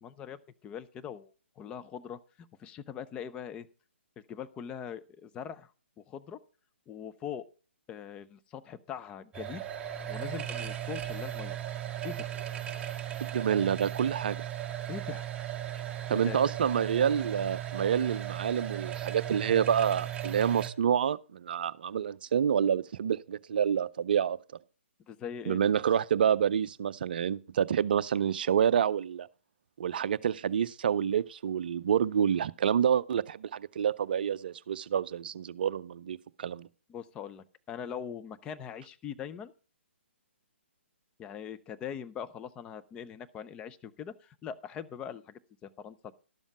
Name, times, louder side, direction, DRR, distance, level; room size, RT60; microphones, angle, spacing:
voice 1, 0.0-2.2 2.6-3.7 4.2-5.7 6.0-6.4 6.9-7.5 7.9-9.6 10.1-11.6 12.0-12.3 14.9-15.3 16.1-16.5 25.1-25.6 36.9-39.5 41.2-46.1, left 8 dB, 15° left, 0.6 m, -41 dB
sound 1, 9.3-20.7, right 11 dB, 15° right, 1.2 m, -37 dB
voice 2, 13.2-14.4 16.1-24.4 25.5-29.3 29.8-36.7, right 8 dB, 45° right, 0.5 m, -28 dB
12.5 x 7.1 x 5.0 m
figure-of-eight pair, 135°, 7 cm